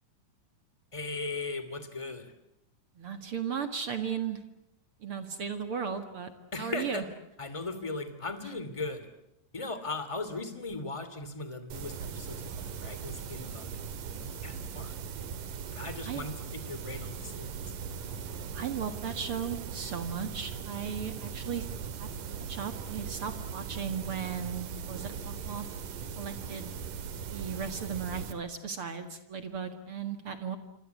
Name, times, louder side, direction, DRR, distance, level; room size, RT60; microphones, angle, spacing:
voice 1, 0.9-2.3 6.5-7.0 7.4-9.1 9.5-13.7 14.4-14.9 15.7-17.5, left 3 dB, 10° left, 11 dB, 2.4 m, -38 dB
voice 2, 3.0-4.4 5.0-6.3 6.6-7.0 16.0-16.3 18.5-21.7 22.0-22.1 22.5-25.7 26.2-26.7 27.3-30.6, right 7 dB, 50° right, 9 dB, 2.3 m, -36 dB
sound 1, 11.7-28.3, right 6 dB, 80° right, 3.5 m, -39 dB
26.5 x 25.5 x 8.3 m, 0.81 s
omnidirectional pair, 3.7 m